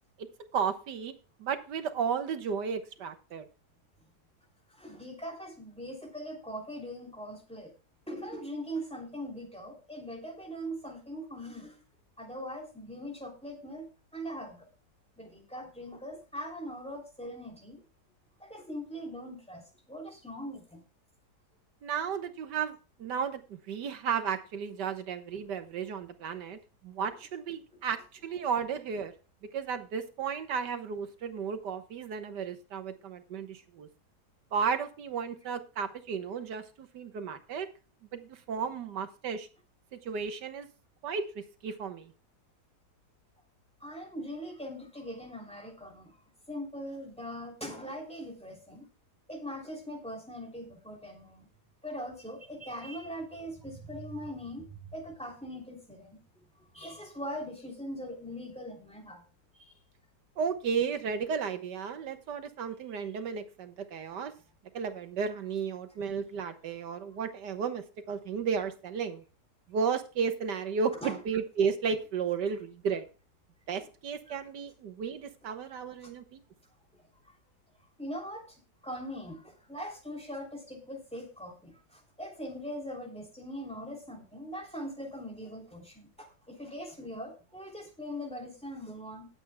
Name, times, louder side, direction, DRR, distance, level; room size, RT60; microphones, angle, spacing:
voice 1, 0.2-1.1 1.4-3.5 21.8-29.1 29.4-33.9 34.5-37.7 38.1-39.5 39.9-40.7 41.0-42.1 60.4-64.3 64.7-69.2 69.7-73.1 73.7-76.4, right 6 dB, 90° right, 9 dB, 1.8 m, -34 dB
voice 2, 4.7-7.7 8.1-11.8 12.2-14.7 15.2-17.8 18.4-19.6 19.9-20.8 43.8-46.2 46.5-48.9 49.3-51.5 51.8-56.2 56.7-59.2 59.5-59.7 71.0-71.2 74.3-74.4 76.0-76.1 78.0-78.6 78.8-89.3, equal, 5° left, 1 dB, 3.0 m, -41 dB
19.5 x 7.9 x 2.2 m, 0.33 s
omnidirectional pair, 1.8 m